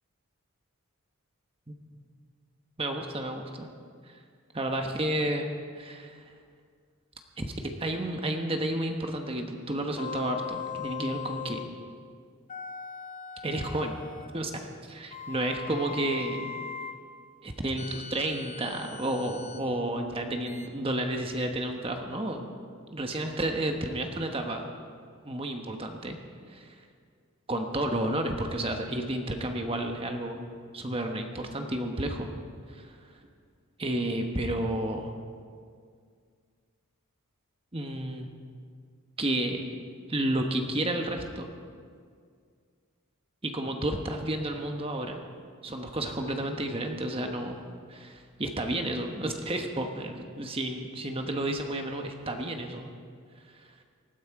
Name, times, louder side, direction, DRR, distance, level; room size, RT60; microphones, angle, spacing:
voice 1, 2.8-3.7 4.1-4.2 4.5-6.2 7.4-11.7 13.4-13.9 14.3-14.5 14.9-16.5 17.4-22.5 22.9-24.7 25.2-26.2 26.5-26.7 27.5-30.4 30.7-32.3 32.7-33.0 33.8-35.1 37.7-38.3 39.2-39.6 40.1-41.5 43.4-45.2 45.6-47.6 47.9-52.9 53.5-53.7, right 1 dB, 25° right, 4 dB, 1.1 m, -31 dB
sound 1, 10.0-11.7 12.5-14.4 15.1-17.0 17.8-19.6 20.5-20.7, left 7 dB, 35° left, 0.7 m, -40 dB
19.5 x 13.5 x 4.7 m, 2.1 s
head